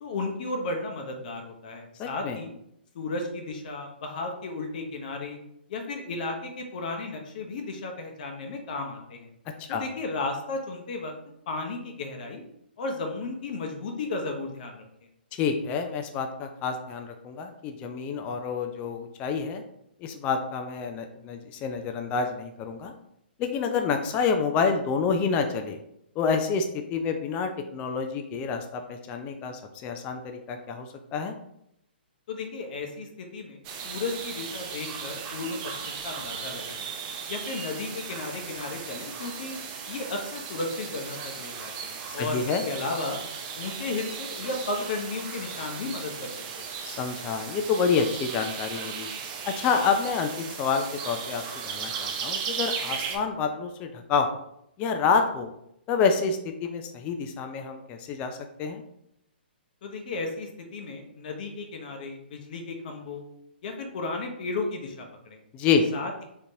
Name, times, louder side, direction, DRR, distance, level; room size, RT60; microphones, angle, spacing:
voice 1, 0.0-2.5 2.9-5.4 5.7-9.3 9.7-11.1 11.5-12.4 12.8-14.8 32.3-36.8 37.3-39.6 39.9-43.2 43.6-46.3 59.8-63.2 63.6-65.4 65.9-66.1, left 3 dB, 50° left, 3 dB, 0.7 m, -34 dB
voice 2, 2.0-2.4 9.6-9.8 15.3-19.6 20.0-22.9 23.4-25.8 26.2-31.3 42.1-42.7 46.8-49.1 49.4-54.3 54.8-55.5 55.9-58.8 65.5-65.9, left 5 dB, 25° left, 5 dB, 0.3 m, -28 dB
sound 1, 33.6-53.2, right 6 dB, 30° right, 0.5 m, -36 dB
3.6 x 2.8 x 2.7 m, 0.76 s
figure-of-eight pair, 125°, 6 cm